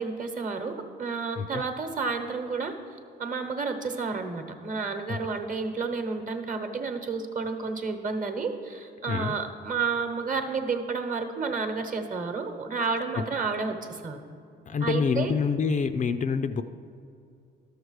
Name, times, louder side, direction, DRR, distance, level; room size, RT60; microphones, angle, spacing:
voice 1, 0.0-2.8 3.2-14.2 14.8-15.3, right 4 dB, 40° right, 6 dB, 1.0 m, -31 dB
voice 2, 14.7-16.6, left 5 dB, 40° left, 10 dB, 0.4 m, -26 dB
12.0 x 6.5 x 4.7 m, 2.5 s
cardioid pair, 90°, 20 cm